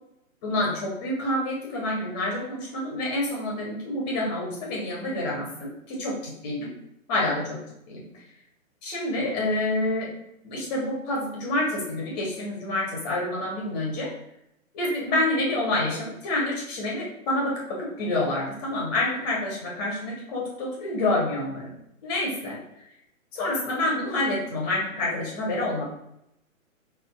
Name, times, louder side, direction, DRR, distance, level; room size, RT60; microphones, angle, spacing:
voice 1, 0.4-6.7 7.1-7.6 7.9-8.2 8.8-10.1 10.4-14.1 14.7-21.7 22.0-22.6 23.3-25.8, left 1 dB, 30° left, -3 dB, 1.6 m, -28 dB
5.1 x 4.2 x 2.3 m, 0.81 s
hypercardioid pair, 150°, 41 cm